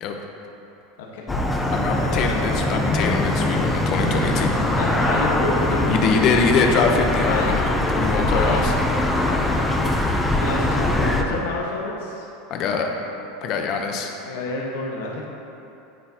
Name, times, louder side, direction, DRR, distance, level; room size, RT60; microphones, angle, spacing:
voice 1, 1.0-2.2 4.8-5.9 7.2-7.6 8.2-8.7 9.1-12.3 14.2-15.3, left 3 dB, 90° left, -2 dB, 1.3 m, -30 dB
sound 1, 1.3-11.2, left 1 dB, 10° left, 0.6 m, -22 dB
voice 2, 1.7-4.6 5.9-8.7 10.8-11.1 12.5-12.9 13.4-14.1, left 5 dB, 40° left, 3 dB, 0.8 m, -23 dB
10.0 x 9.3 x 2.9 m, 2.9 s
supercardioid pair, 160°, 0 cm